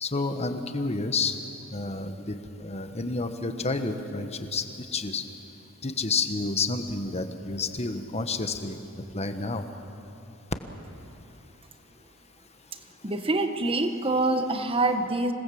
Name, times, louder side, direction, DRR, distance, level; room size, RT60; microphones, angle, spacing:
voice 1, 0.0-1.3 1.7-5.2 5.8-8.8 9.1-9.6, left 3 dB, 30° left, 8 dB, 1.3 m, -30 dB
voice 2, 13.0-15.3, right 2 dB, 25° right, 8 dB, 1.2 m, -25 dB
26.5 x 18.5 x 7.8 m, 3.0 s
head